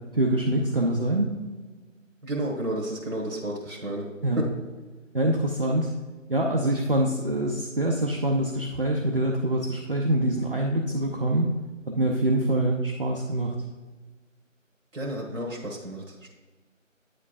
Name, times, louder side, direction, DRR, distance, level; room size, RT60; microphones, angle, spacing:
voice 1, 0.1-1.3 4.2-4.4 5.1-5.9 6.3-11.5 11.9-13.5, right 1 dB, 45° right, -1 dB, 0.6 m, -25 dB
voice 2, 2.2-4.1 4.4-4.5 14.9-16.3, right 1 dB, 80° right, -3 dB, 1.7 m, -31 dB
9.8 x 4.5 x 2.5 m, 1.3 s
figure-of-eight pair, 170°, 39 cm